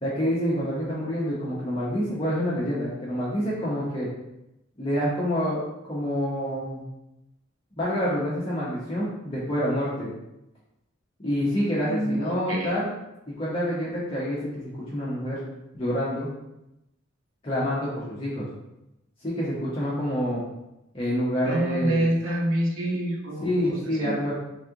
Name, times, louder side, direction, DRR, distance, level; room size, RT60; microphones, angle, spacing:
voice 1, 0.0-4.1 4.8-6.9 7.8-10.1 11.2-12.9 13.3-14.6 14.9-15.4 15.7-16.3 17.4-18.5 19.2-20.4 20.9-22.0 23.4-24.3, equal, 25° left, -8 dB, 0.9 m, -27 dB
voice 2, 11.8-12.7 21.4-24.2, right 1 dB, 80° right, -2 dB, 0.9 m, -27 dB
3.5 x 3.2 x 3.8 m, 0.90 s
head